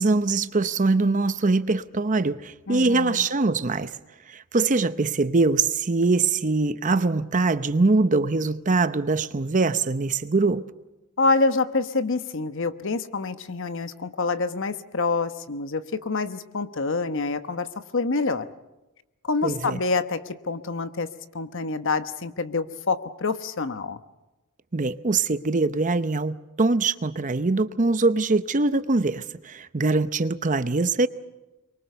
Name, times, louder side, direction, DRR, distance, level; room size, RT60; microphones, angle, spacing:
voice 1, 0.0-4.0 4.3-10.7 19.4-19.8 24.7-31.1, right 3 dB, 35° right, 0.8 m, -23 dB
voice 2, 2.7-3.3 11.2-18.5 19.2-24.0, left 3 dB, 60° left, 1.1 m, -27 dB
24.5 x 23.5 x 6.9 m
head